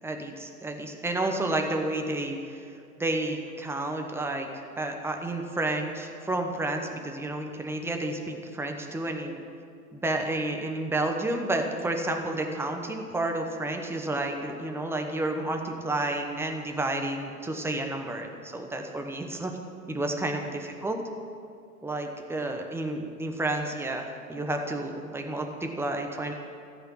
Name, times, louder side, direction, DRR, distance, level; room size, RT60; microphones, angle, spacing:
voice 1, 0.0-2.7 3.0-9.4 9.9-19.6 19.9-21.0 21.8-26.3, right 2 dB, 5° right, 3 dB, 1.0 m, -31 dB
13.5 x 6.2 x 9.2 m, 2.3 s
hypercardioid pair, 110°, 46 cm